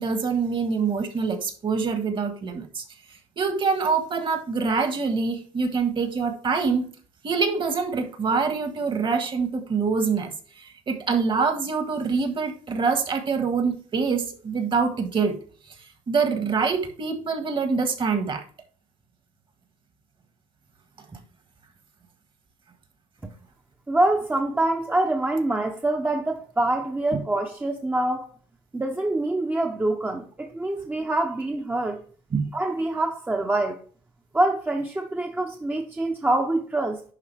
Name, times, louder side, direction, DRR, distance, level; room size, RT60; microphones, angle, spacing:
voice 1, 0.0-2.8 3.4-6.9 7.2-15.4 16.1-18.4 27.1-27.2 32.3-32.5, right 5 dB, 40° right, 1.6 m, -25 dB
voice 2, 23.9-28.3 28.7-32.0 32.5-33.8 34.3-37.0, right 2 dB, 15° right, 0.8 m, -25 dB
11.0 x 3.6 x 3.4 m
supercardioid pair, 95°, 14 cm